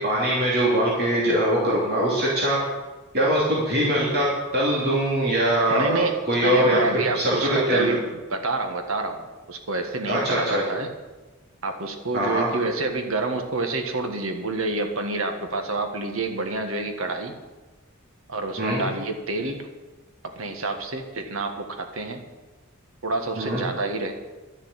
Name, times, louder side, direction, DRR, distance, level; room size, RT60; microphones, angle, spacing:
voice 1, 0.0-2.6 3.1-4.3 4.5-6.8 7.1-8.0 10.0-10.6 12.1-12.5 18.6-18.8 23.4-23.6, right 1 dB, 50° right, -6 dB, 3.0 m, -22 dB
voice 2, 5.7-8.0 8.3-10.9 11.6-17.3 18.3-19.7 20.2-22.2 23.0-24.1, right 3 dB, 70° right, 5 dB, 1.6 m, -28 dB
12.5 x 6.9 x 9.4 m, 1.2 s
head